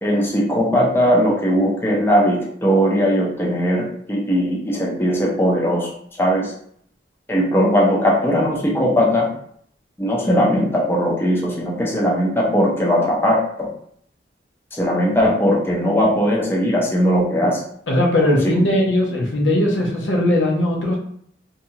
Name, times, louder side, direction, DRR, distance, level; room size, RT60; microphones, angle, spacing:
voice 1, 0.0-5.9 6.2-6.5 7.3-9.3 10.0-13.7 14.7-17.6 18.3-18.4, equal, 10° left, -3 dB, 0.5 m, -19 dB
voice 2, 17.9-21.0, left 1 dB, 80° left, -1 dB, 0.7 m, -18 dB
2.7 x 2.2 x 2.8 m, 0.64 s
head